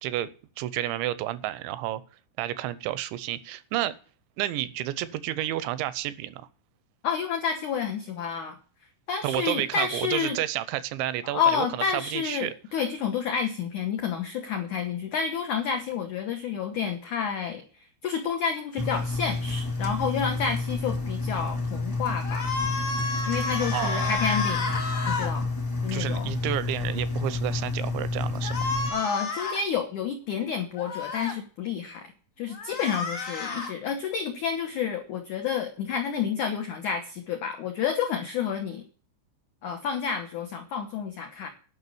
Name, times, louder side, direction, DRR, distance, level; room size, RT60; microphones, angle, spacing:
voice 1, 0.0-2.0 2.4-4.0 4.4-6.5 9.2-12.5 23.6-24.2 25.9-28.7, right 13 dB, 85° right, 3.0 m, -31 dB
voice 2, 7.0-8.6 9.1-10.4 11.2-22.5 23.3-24.7 25.1-25.5 25.8-26.3 28.9-32.1 32.4-38.8 39.6-41.5, left 6 dB, 90° left, 1.7 m, -29 dB
Engine, 18.8-28.9, left 3 dB, 20° left, 0.5 m, -30 dB
sound 1, 22.2-25.3 28.4-29.6 30.8-31.3 32.5-33.7, left 3 dB, 50° left, 0.9 m, -31 dB
11.0 x 6.0 x 8.5 m
omnidirectional pair, 5.3 m